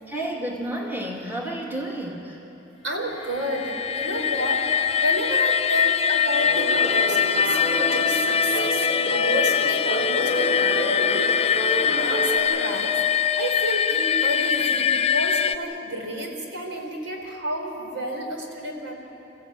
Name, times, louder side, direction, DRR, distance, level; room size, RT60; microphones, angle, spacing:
voice 1, 0.1-2.4, right 1 dB, 10° right, -2 dB, 2.3 m, -31 dB
voice 2, 2.8-4.7 5.0-11.3 11.7-12.9 13.4-18.9, equal, 75° right, 1 dB, 4.3 m, -30 dB
sound 1, 3.3-15.5, left 7 dB, 30° left, 0.5 m, -23 dB
sound 2, 6.4-12.4, equal, 50° right, 4.4 m, -29 dB
29.0 x 15.0 x 9.0 m, 3.0 s
head